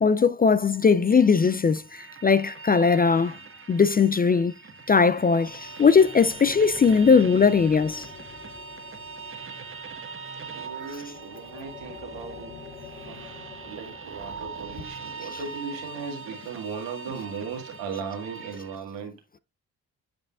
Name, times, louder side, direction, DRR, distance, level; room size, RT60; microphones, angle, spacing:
voice 1, 0.0-3.4 3.7-4.5 4.9-8.1, left 5 dB, 25° left, 0.3 m, -19 dB
sound 1, 0.7-18.8, right 4 dB, 30° right, 1.4 m, -42 dB
sound 2, 5.4-14.0, left 6 dB, 60° left, 4.0 m, -47 dB
voice 2, 10.5-12.5 13.1-19.2, right 6 dB, 85° right, 1.9 m, -37 dB
9.4 x 5.2 x 2.4 m
hypercardioid pair, 45°, 42 cm